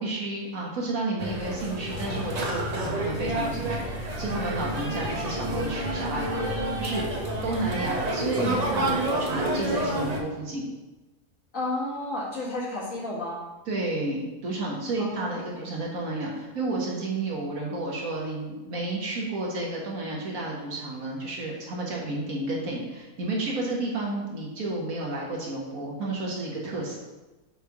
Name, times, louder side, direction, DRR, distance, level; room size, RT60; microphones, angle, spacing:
voice 1, 0.0-6.4 6.8-7.1 7.4-10.7 13.7-27.0, right 2 dB, 60° right, -3 dB, 1.5 m, -31 dB
sound 1, 1.2-10.2, right 1 dB, 45° right, 0.5 m, -29 dB
voice 2, 11.5-13.4 15.0-15.6, left 2 dB, 55° left, -5 dB, 1.8 m, -32 dB
6.4 x 3.3 x 4.6 m, 1.1 s
omnidirectional pair, 1.7 m